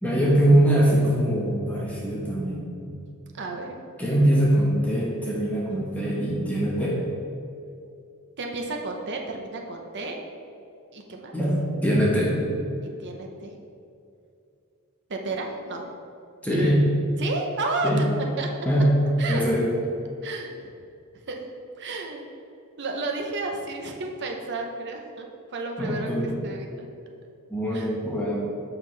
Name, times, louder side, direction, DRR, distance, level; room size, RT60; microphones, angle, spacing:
voice 1, 0.0-3.0 4.0-7.0 11.3-12.5 16.4-16.8 17.8-18.1 18.6-19.0 19.3-19.7 25.8-26.4 27.5-28.4, right 1 dB, 5° left, -5 dB, 1.1 m, -22 dB
voice 2, 3.4-3.8 8.4-10.2 10.9-11.3 13.0-13.5 15.1-15.8 16.6-16.7 17.2-18.0 18.4-18.5 19.2-19.4 20.2-20.7 21.3-21.4 21.8-22.2 22.8-25.3 25.5-26.9 27.7-28.0, right 3 dB, 55° right, 2 dB, 0.8 m, -32 dB
7.2 x 5.9 x 3.3 m, 2.5 s
head